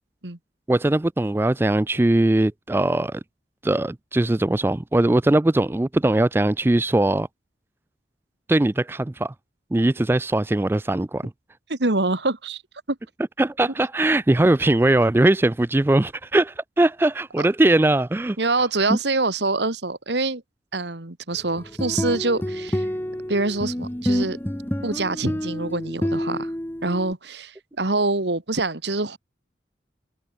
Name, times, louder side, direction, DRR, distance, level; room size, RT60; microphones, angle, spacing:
voice 1, 0.7-3.2 3.6-7.3 8.5-9.3 9.7-11.2 13.4-18.4 18.9-19.0, right 1 dB, 15° right, 0.3 m, -20 dB
voice 2, 11.7-12.6 12.9-13.0 17.4-17.5 18.4-20.4 20.7-22.9 23.3-24.4 24.8-26.5 26.8-29.2, right 3 dB, 80° right, 2.1 m, -25 dB
sound 1, 21.6-27.1, equal, 10° left, 1.1 m, -28 dB
head